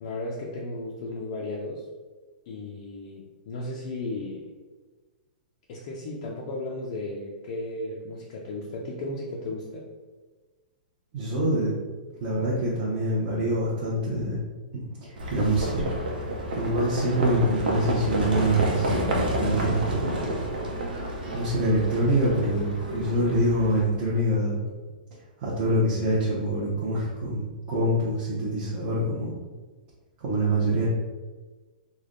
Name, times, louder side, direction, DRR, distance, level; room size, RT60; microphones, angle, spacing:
voice 1, 0.0-1.8 2.5-4.5 5.7-9.8, left 2 dB, 35° left, -3 dB, 0.4 m, -35 dB
voice 2, 11.1-11.8 12.2-14.4 14.7-15.9 16.5-18.9 19.3-20.2 21.3-24.6 25.4-29.3 30.2-30.9, right 1 dB, 25° right, -9 dB, 0.7 m, -25 dB
Livestock farm animals working animals, 15.2-23.8, right 1 dB, 70° right, 0.8 m, -29 dB
3.3 x 2.2 x 3.7 m, 1.3 s
hypercardioid pair, 175°, 5 cm